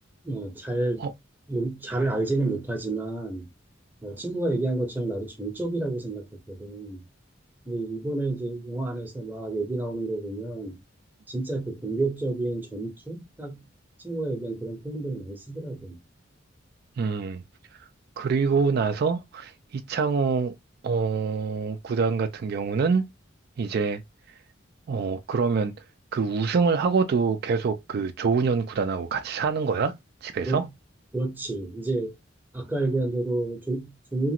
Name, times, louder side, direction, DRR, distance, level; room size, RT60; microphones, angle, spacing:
voice 1, 0.2-1.1 1.5-3.5 4.0-7.0 7.7-10.8 11.3-13.6 14.0-16.0 30.4-30.7 31.1-32.1 32.5-34.3, right 2 dB, 10° right, 0.7 m, -30 dB
voice 2, 17.0-17.4 18.2-20.5 20.8-23.0 23.6-24.0 24.9-25.7 26.1-29.9 30.2-30.6, right 5 dB, 55° right, 0.3 m, -25 dB
2.9 x 2.4 x 2.8 m
head